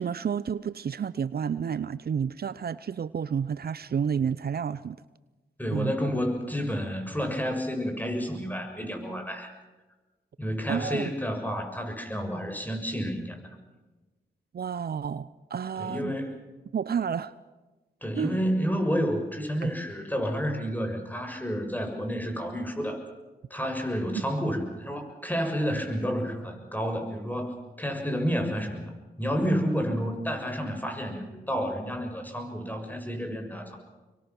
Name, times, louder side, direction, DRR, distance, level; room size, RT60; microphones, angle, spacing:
voice 1, 0.0-5.0 5.7-5.9 10.7-11.1 14.5-16.1 16.7-17.3 18.2-18.4 19.6-19.7, right 7 dB, 60° right, 17 dB, 0.7 m, -30 dB
voice 2, 5.6-9.5 10.4-13.4 15.8-16.5 18.0-23.0 23.5-28.9 29.2-33.8, equal, 10° left, 4 dB, 6.9 m, -30 dB
25.5 x 23.0 x 6.1 m, 1.2 s
supercardioid pair, 45°, 18 cm